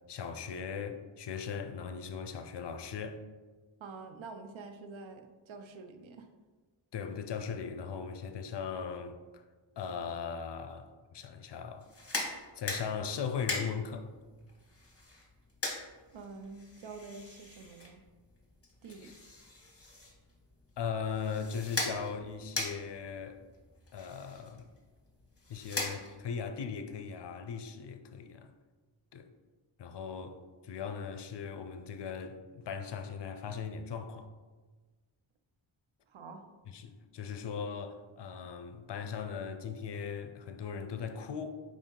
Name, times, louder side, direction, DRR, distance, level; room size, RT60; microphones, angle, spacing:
voice 1, 0.1-3.2 6.9-9.4 9.8-11.9 12.6-14.1 19.0-19.1 20.8-23.4 23.9-24.7 25.5-28.5 29.1-29.3 29.8-34.3 36.7-41.6, left 6 dB, 60° left, 0.5 m, -39 dB
voice 2, 3.8-6.3 16.1-18.0 18.8-19.1 36.1-36.4, right 4 dB, 75° right, 0.6 m, -47 dB
sound 1, 11.8-26.4, left 2 dB, 30° left, 1.1 m, -41 dB
5.0 x 2.6 x 3.7 m
cardioid pair, 50°, 48 cm